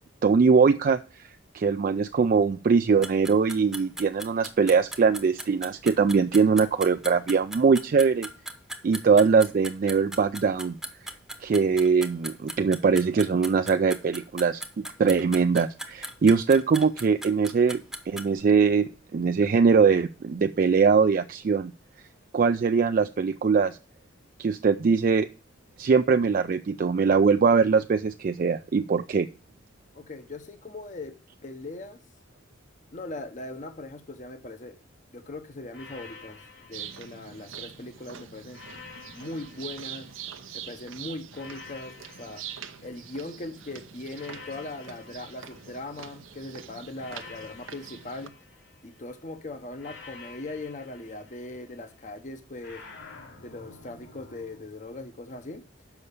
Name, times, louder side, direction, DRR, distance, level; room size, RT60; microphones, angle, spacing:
voice 1, 0.2-1.3 1.5-8.3 8.8-10.7 11.4-21.7 22.3-23.8 24.4-25.3 25.8-29.3, right 5 dB, 45° right, 8 dB, 0.3 m, -22 dB
sound 1, 3.0-18.4, right 1 dB, ahead, 0.8 m, -38 dB
voice 2, 29.9-31.1 31.4-32.0 32.9-34.8 35.1-38.6 39.1-40.1 40.5-42.4 42.8-48.3 48.8-52.8 53.4-55.6, left 2 dB, 40° left, 8 dB, 0.8 m, -39 dB
sound 2, 35.7-37.9 38.5-40.7 41.3-43.5 44.1-46.3 46.9-49.1 49.8-51.9 52.6-54.6, left 4 dB, 70° left, 4.3 m, -49 dB
sound 3, 36.7-48.3, right 8 dB, 80° right, 0.7 m, -44 dB
7.0 x 5.5 x 6.5 m, 0.36 s
head